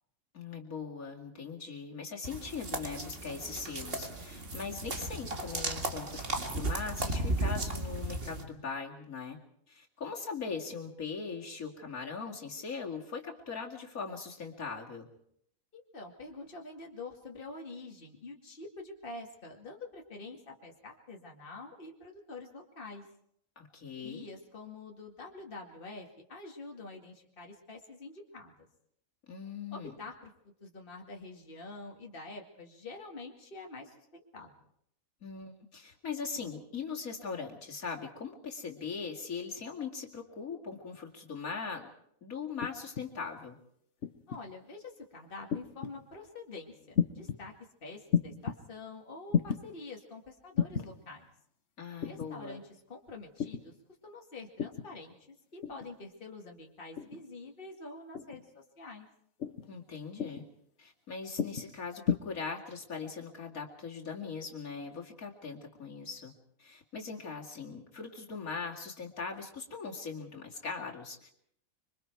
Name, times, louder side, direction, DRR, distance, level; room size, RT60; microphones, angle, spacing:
voice 1, 0.3-9.4 9.7-15.1 23.6-24.3 29.3-30.0 35.2-41.9 42.2-43.6 51.8-52.6 59.7-60.4 60.8-66.3 66.6-71.3, left 5 dB, 75° left, -1 dB, 2.8 m, -40 dB
sound 1, 2.2-8.4, right 2 dB, 40° right, 2.1 m, -35 dB
voice 2, 15.7-23.0 23.9-28.7 29.7-30.3 30.6-34.5 44.3-47.5 47.8-51.3 52.1-52.6 52.9-53.7 54.0-55.2 55.5-59.1, left 3 dB, 40° left, 0 dB, 2.4 m, -46 dB
sound 2, 42.6-43.1 44.0-44.4 45.5-46.0 47.0-47.4 48.1-48.6 49.3-49.6 50.6-50.9 52.0-52.3 53.4-53.7 54.6-54.9 55.6-55.9 57.0-57.3 58.1-58.5 59.4-59.7 60.2-60.5 61.4-61.7 62.1-62.2, left 7 dB, 55° left, 1.3 m, -32 dB
26.0 x 23.5 x 4.7 m, 0.69 s
omnidirectional pair, 1.5 m